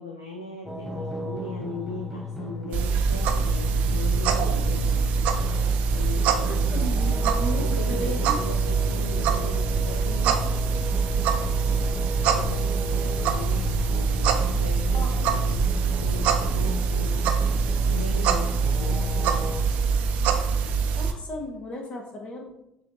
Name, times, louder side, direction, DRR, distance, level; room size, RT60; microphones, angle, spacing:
voice 1, 0.0-5.1 5.8-7.2 7.5-10.3 12.2-15.6 16.0-17.2 17.8-18.5 18.8-19.6, left 3 dB, 85° left, 1 dB, 0.4 m, -38 dB
sound 1, 0.7-19.6, left 3 dB, ahead, 0.7 m, -34 dB
sound 2, 2.7-21.1, right 5 dB, 60° right, 0.4 m, -24 dB
voice 2, 6.4-8.4 14.9-15.3 21.0-22.5, left 1 dB, 45° left, 2 dB, 0.9 m, -35 dB
5.9 x 2.8 x 3.0 m, 0.83 s
figure-of-eight pair, 55°, 3 cm